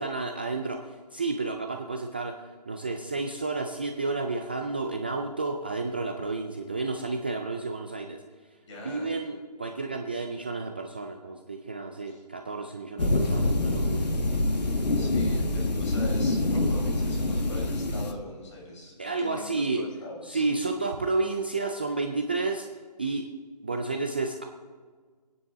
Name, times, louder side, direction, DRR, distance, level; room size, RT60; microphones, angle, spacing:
voice 1, 0.0-8.2 8.8-14.1 19.0-19.9 20.2-22.7 23.0-23.4 23.6-24.4, right 3 dB, 15° right, 3 dB, 0.3 m, -31 dB
voice 2, 8.7-9.2 12.1-12.2 15.0-20.4, left 1 dB, 45° left, -1 dB, 5.4 m, -41 dB
sound 1, 13.0-18.1, left 2 dB, 75° left, 1.6 m, -26 dB
24.5 x 9.6 x 3.7 m, 1.5 s
figure-of-eight pair, 155°, 21 cm